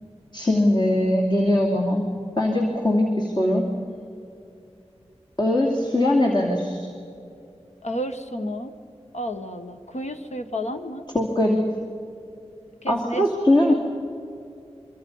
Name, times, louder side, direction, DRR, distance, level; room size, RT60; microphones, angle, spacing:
voice 1, 0.3-2.0 2.4-3.7 5.4-6.9 11.1-11.6 12.9-13.7, left 1 dB, 40° left, -1 dB, 2.8 m, -21 dB
voice 2, 7.8-8.7 9.1-11.1 12.8-13.7, equal, 90° left, 6 dB, 1.4 m, -32 dB
25.0 x 24.5 x 5.6 m, 2.7 s
wide cardioid pair, 60°, 11 cm